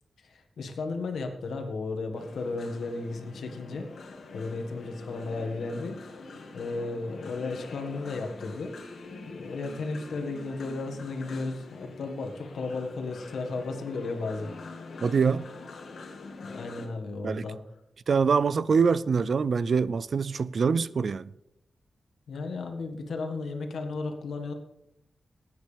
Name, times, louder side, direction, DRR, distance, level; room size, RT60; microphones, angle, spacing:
voice 1, 0.2-6.0 6.5-8.7 9.3-14.5 16.4-17.6 22.3-24.5, left 3 dB, 90° left, 1.6 m, -34 dB
sound 1, 2.2-16.9, left 3 dB, 70° left, 1.7 m, -44 dB
voice 2, 15.0-15.5 17.2-17.5 18.1-21.3, right 5 dB, 55° right, 0.4 m, -24 dB
19.0 x 9.2 x 3.4 m
wide cardioid pair, 130°, 0 cm